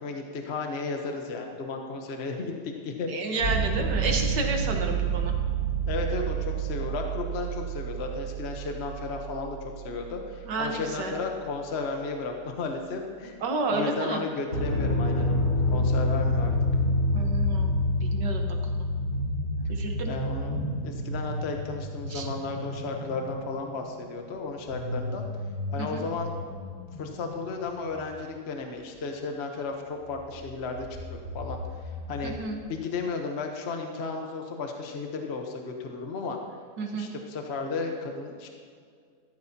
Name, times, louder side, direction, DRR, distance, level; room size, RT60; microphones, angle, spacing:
voice 1, 0.0-3.4 5.9-9.6 9.8-13.4 13.7-16.5 20.0-20.6 20.8-25.2 25.7-26.3 27.0-31.6 32.1-32.3 32.7-36.4 36.9-38.5, left 4 dB, 45° left, 3 dB, 1.1 m, -34 dB
voice 2, 3.1-5.3 10.5-11.1 13.4-14.2 17.1-17.8 18.0-18.9 19.7-20.1 22.1-22.3 25.8-26.0 32.2-32.6 36.8-37.1, right 3 dB, 80° right, 3 dB, 1.9 m, -31 dB
sound 1, 3.4-11.2 14.5-20.6, equal, 65° left, 4.0 m, -28 dB
sound 2, 15.7-16.1 16.4-28.5 29.7-29.8 30.0-32.6, equal, 80° left, 3.1 m, -36 dB
15.0 x 12.5 x 2.8 m, 2.1 s
omnidirectional pair, 1.8 m